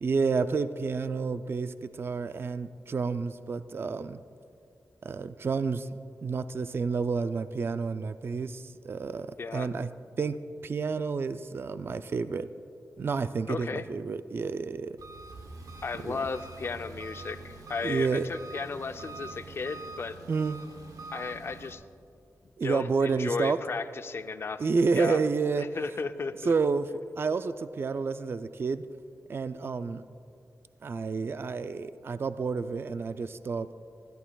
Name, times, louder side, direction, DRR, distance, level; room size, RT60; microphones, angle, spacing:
voice 1, 0.0-4.2 5.0-5.9 6.2-9.3 9.5-9.9 10.2-12.5 13.0-15.0 16.0-16.2 17.8-18.3 20.3-20.6 22.6-23.6 24.6-25.7 26.4-26.9 27.2-28.8 29.3-30.0 30.8-33.7, right 4 dB, 40° right, 12 dB, 0.3 m, -30 dB
voice 2, 13.5-13.8 15.8-20.2 21.1-21.8 22.6-24.6 24.9-25.2 25.6-26.5, left 4 dB, 45° left, 10 dB, 0.5 m, -34 dB
Engine, 15.0-21.7, right 3 dB, 85° right, 0.9 m, -45 dB
19.5 x 13.5 x 2.3 m, 2.4 s
wide cardioid pair, 120°, 6 cm